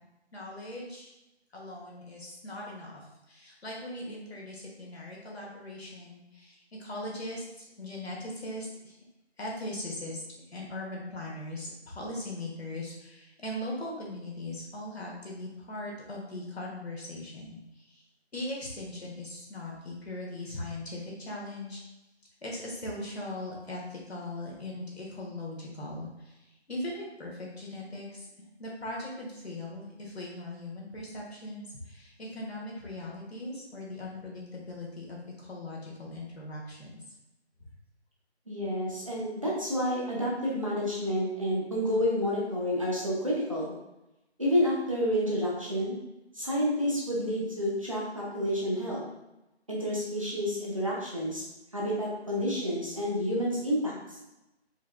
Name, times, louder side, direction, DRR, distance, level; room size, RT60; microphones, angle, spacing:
voice 1, 0.3-1.1 1.5-9.0 9.4-18.0 18.3-21.8 22.4-28.3 28.6-37.0 37.6-37.7, left 1 dB, 65° left, -3 dB, 1.5 m, -39 dB
voice 2, 38.5-43.7 44.4-45.9 46.3-49.0 49.7-51.4 51.7-54.0, equal, 30° right, -5 dB, 0.7 m, -29 dB
4.6 x 3.3 x 2.2 m, 0.94 s
figure-of-eight pair, 165°, 34 cm